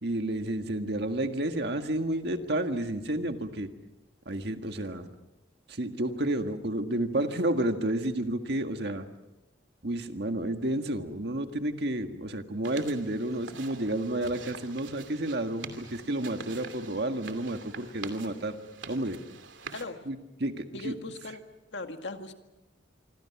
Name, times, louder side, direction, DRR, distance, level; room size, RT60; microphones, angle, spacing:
voice 1, 0.0-3.7 4.3-5.1 5.7-9.1 9.8-18.6 18.9-19.2 20.1-21.0, right 1 dB, 60° right, 6 dB, 1.8 m, -31 dB
sound 1, 12.6-19.8, right 5 dB, 80° right, 2.7 m, -46 dB
voice 2, 20.7-21.4 21.7-22.3, left 3 dB, 70° left, 6 dB, 1.9 m, -38 dB
26.5 x 24.5 x 6.0 m, 1.0 s
head